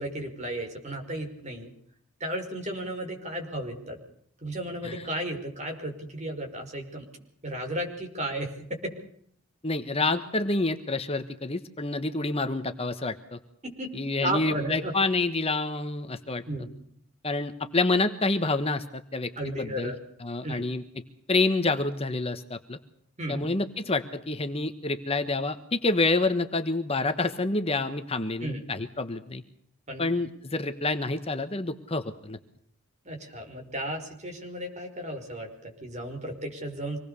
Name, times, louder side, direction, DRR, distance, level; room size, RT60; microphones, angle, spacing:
voice 1, 0.0-1.7 2.2-4.0 4.4-7.1 7.4-8.5 13.8-13.9 14.2-14.9 16.5-16.7 19.4-20.0 20.4-20.7 23.2-23.5 28.4-28.6 29.9-30.1 33.0-37.0, right 1 dB, 30° right, 3 dB, 5.6 m, -34 dB
voice 2, 9.6-13.4 13.9-16.4 17.2-19.9 20.2-20.8 21.3-22.8 23.3-29.4 30.0-32.4, left 3 dB, 25° left, 8 dB, 1.2 m, -28 dB
26.0 x 19.5 x 6.9 m, 0.67 s
head